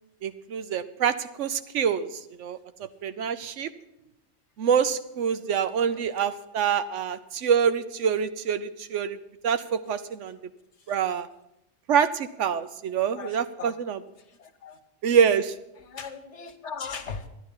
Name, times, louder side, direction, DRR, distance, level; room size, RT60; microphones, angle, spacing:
voice 1, 0.2-2.1 2.4-2.6 3.0-3.7 4.6-9.2 9.4-10.4 10.9-11.3 11.9-14.0 15.0-15.5, right 7 dB, 85° right, 12 dB, 1.1 m, -25 dB
voice 2, 5.7-6.2 10.7-10.9 13.1-13.8 14.2-14.8 15.7-17.3, left 5 dB, 75° left, 8 dB, 1.5 m, -40 dB
12.0 x 10.5 x 5.5 m, 0.85 s
omnidirectional pair, 1.2 m